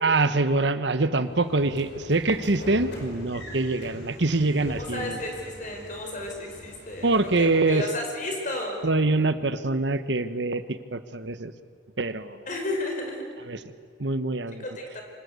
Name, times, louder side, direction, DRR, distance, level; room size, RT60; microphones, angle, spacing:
voice 1, 0.0-5.2 7.0-7.9 8.8-11.5 12.0-12.4 13.5-13.6 14.0-14.6, right 2 dB, 75° right, 11 dB, 1.2 m, -24 dB
Train / Sliding door, 1.2-7.8, equal, 65° left, 5.4 m, -43 dB
voice 2, 4.7-8.9 12.5-13.2 14.6-15.0, left 1 dB, 45° left, 2 dB, 5.2 m, -33 dB
25.5 x 20.0 x 8.3 m, 2.1 s
head